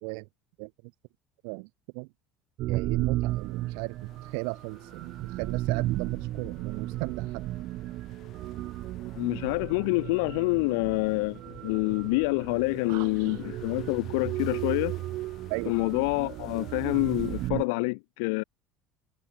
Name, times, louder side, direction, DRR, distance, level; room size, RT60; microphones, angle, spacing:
sound 1, 2.6-17.6, right 16 dB, 60° right, 1.5 m, -34 dB
voice 1, 2.7-3.9 4.3-7.4 12.9-13.1 15.5-15.7, right 40 dB or more, 80° right, 2.2 m, -36 dB
sound 2, 3.3-17.7, left 14 dB, 60° left, 4.7 m, -55 dB
voice 2, 9.1-14.9 15.7-18.4, left 30 dB, 80° left, 1.0 m, -27 dB
supercardioid pair, 95°, 0 cm